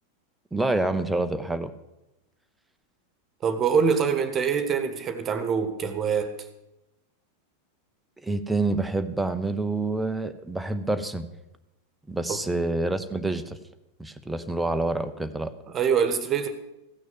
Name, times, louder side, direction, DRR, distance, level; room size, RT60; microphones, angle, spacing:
voice 1, 0.5-1.7 8.2-11.3 12.1-13.6 14.0-15.5, right 2 dB, 5° right, 0.8 m, -27 dB
voice 2, 3.4-6.3 12.3-12.4 15.7-16.5, right 6 dB, 25° right, 1.3 m, -24 dB
15.5 x 6.2 x 7.5 m
figure-of-eight pair, 90°, 0 cm